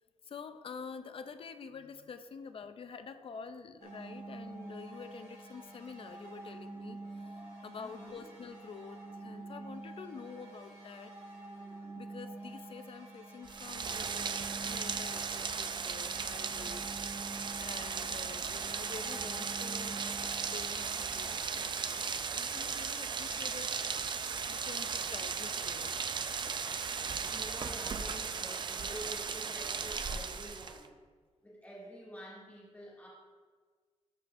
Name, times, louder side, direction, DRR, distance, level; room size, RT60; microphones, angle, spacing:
voice 1, 0.2-11.1 11.9-16.8 17.6-23.8 24.5-26.1, left 5 dB, 50° left, 9 dB, 0.5 m, -48 dB
sound 1, 3.8-21.4, right 2 dB, 70° right, 2.4 m, -47 dB
voice 2, 7.8-8.3 27.1-30.9 31.4-33.1, equal, 15° left, -8 dB, 2.3 m, -48 dB
Rain, 13.5-30.9, right 5 dB, 40° right, 0.4 m, -36 dB
12.5 x 6.6 x 2.6 m, 1.5 s
wide cardioid pair, 150°, 12 cm